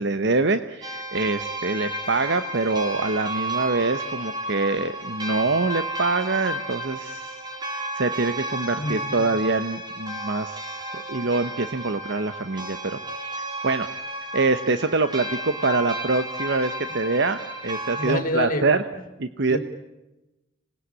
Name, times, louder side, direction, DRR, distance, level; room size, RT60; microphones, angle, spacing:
voice 1, 0.0-7.4 7.7-13.3 13.6-13.9 14.3-17.4 17.6-18.8 19.2-19.6, right 3 dB, 65° right, 10 dB, 1.1 m, -25 dB
sound 1, 0.8-18.2, right 1 dB, 25° right, 4.3 m, -32 dB
voice 2, 8.8-9.2 18.0-18.7 18.9-19.0 19.5-19.6, left 1 dB, 45° left, 7 dB, 3.5 m, -27 dB
26.5 x 20.0 x 9.7 m, 1.0 s
head